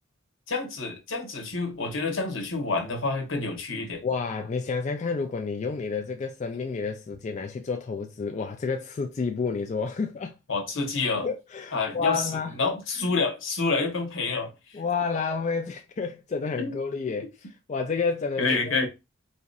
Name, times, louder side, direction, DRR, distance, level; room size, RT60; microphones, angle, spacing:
voice 1, 0.5-4.0 10.5-11.3 11.7-14.5 16.6-16.8 18.4-18.9, left 3 dB, 75° left, 1.0 m, -28 dB
voice 2, 4.0-10.4 11.2-12.5 14.7-18.9, left 5 dB, 35° left, 0.3 m, -30 dB
4.1 x 2.6 x 2.4 m
head